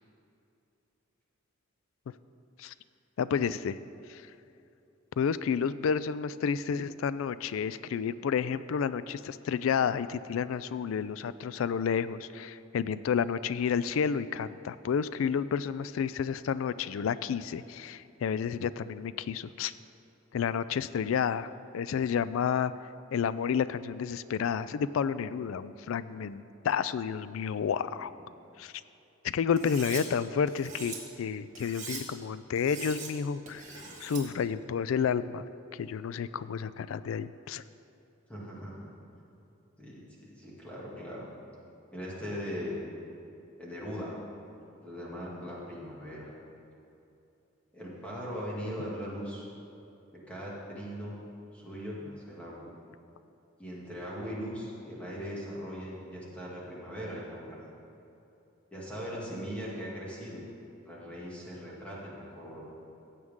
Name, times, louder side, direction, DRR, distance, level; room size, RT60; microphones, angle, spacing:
voice 1, 3.2-3.8 4.1-4.2 5.2-19.7 20.3-22.7 23.1-28.1 28.6-28.7 29.2-33.6 34.0-35.4 35.7-37.6, left 7 dB, 85° left, 16 dB, 0.3 m, -30 dB
Cutlery silverware, 29.6-30.0 30.5-31.0 31.5-32.0 32.5-33.1 33.5-34.2, right 6 dB, 40° right, 2.0 m, -42 dB
voice 2, 38.3-38.9 39.8-41.3 41.9-42.8 43.6-44.2 44.8-46.3 47.7-49.5 50.1-51.2 51.5-52.7 53.6-57.7 58.7-60.4 60.8-62.7, equal, 5° left, -6 dB, 2.2 m, -39 dB
16.0 x 7.7 x 3.7 m, 2.8 s
head